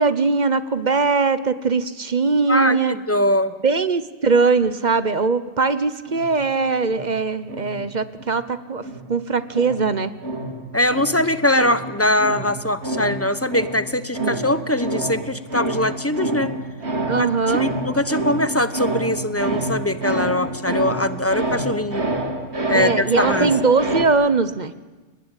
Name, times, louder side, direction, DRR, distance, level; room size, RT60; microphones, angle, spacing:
voice 1, 0.0-3.0 3.6-10.1 14.2-14.3 17.0-17.7 20.7-20.8 22.7-24.7, right 4 dB, 40° right, 13 dB, 1.0 m, -21 dB
voice 2, 2.5-3.5 10.7-16.5 17.1-22.0 22.7-23.5, left 1 dB, 15° left, 12 dB, 1.0 m, -22 dB
sound 1, 6.1-8.5 8.8-24.1, right 2 dB, 70° right, 2.8 m, -28 dB
29.5 x 19.5 x 9.1 m, 1.3 s
omnidirectional pair, 1.2 m